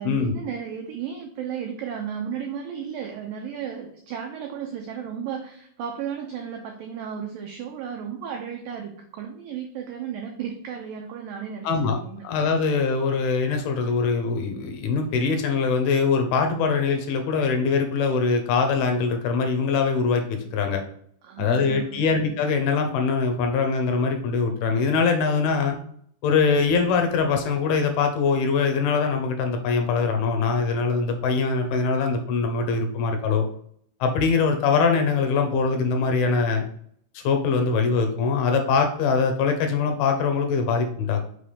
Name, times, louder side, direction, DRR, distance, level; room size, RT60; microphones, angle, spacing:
voice 1, 0.0-12.3 21.2-22.0, right 8 dB, 90° right, 3 dB, 1.9 m, -34 dB
voice 2, 11.6-12.0 12.2-20.8 21.4-25.8 26.2-33.5 34.0-36.6 37.1-41.2, left 5 dB, 80° left, 4 dB, 2.5 m, -23 dB
6.0 x 3.3 x 5.5 m, 0.63 s
omnidirectional pair, 4.8 m